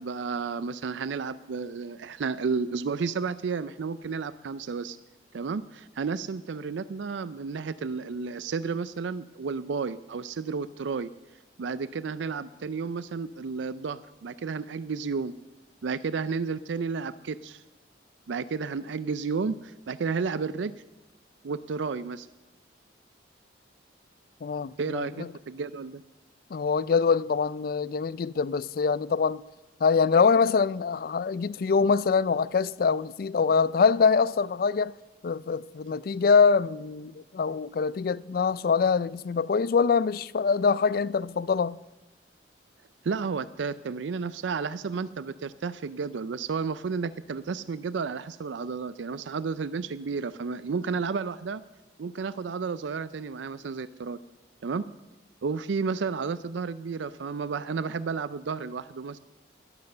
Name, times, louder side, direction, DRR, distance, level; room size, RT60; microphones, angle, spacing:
voice 1, 0.0-5.0 5.3-11.1 11.6-15.3 15.8-17.6 18.3-20.7 21.4-22.3 24.8-26.0 43.0-51.6 52.0-54.2 54.6-54.8 55.4-59.2, right 5 dB, 80° right, 0.4 m, -32 dB
voice 2, 24.4-25.3 26.5-29.4 29.8-34.9 35.2-41.8, left 5 dB, 50° left, 0.3 m, -24 dB
12.0 x 12.0 x 6.7 m
head